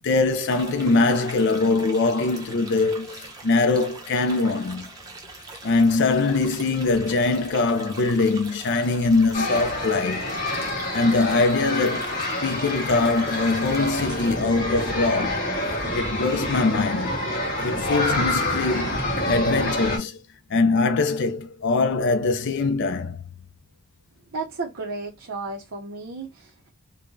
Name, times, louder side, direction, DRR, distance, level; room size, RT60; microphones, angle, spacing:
voice 1, 0.0-4.9 5.6-10.3 10.9-17.2 17.6-20.2 20.5-23.2, left 3 dB, 55° left, 0.4 m, -22 dB
sound 1, 0.5-14.3, right 3 dB, 15° right, 0.7 m, -42 dB
sound 2, 9.3-20.0, left 1 dB, 35° left, 2.5 m, -27 dB
voice 2, 24.3-26.7, right 3 dB, 65° right, 0.7 m, -33 dB
5.3 x 2.1 x 2.6 m
head